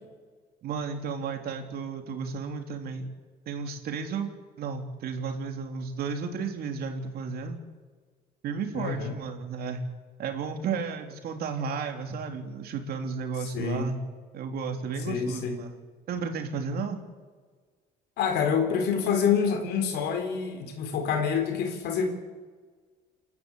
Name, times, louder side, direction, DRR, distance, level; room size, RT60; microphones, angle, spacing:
voice 1, 0.6-3.1 3.4-4.3 4.6-7.6 8.4-9.8 10.2-14.0 14.3-15.7 16.1-17.0, right 5 dB, 65° right, 5 dB, 3.3 m, -33 dB
voice 2, 8.7-9.1 13.4-13.9 15.1-15.6 18.2-22.1, left 6 dB, 80° left, 6 dB, 4.2 m, -27 dB
28.5 x 12.0 x 8.4 m, 1.5 s
cardioid pair, 110°, 17 cm